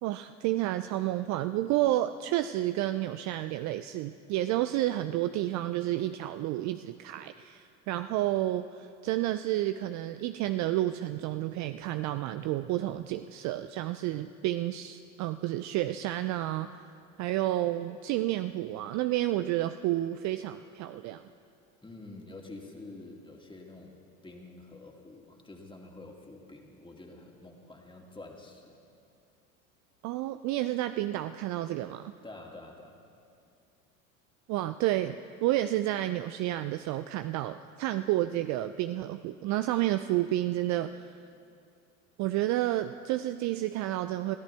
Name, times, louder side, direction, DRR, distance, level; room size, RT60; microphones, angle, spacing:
voice 1, 0.0-16.7 17.2-21.2 30.0-32.1 34.5-41.1 42.2-44.4, right 14 dB, 45° right, 11 dB, 0.5 m, -30 dB
voice 2, 21.8-24.0 24.2-28.6 32.2-33.0, left 2 dB, 10° left, 0 dB, 2.4 m, -47 dB
23.0 x 14.0 x 3.4 m, 2.5 s
hypercardioid pair, 75°, 42 cm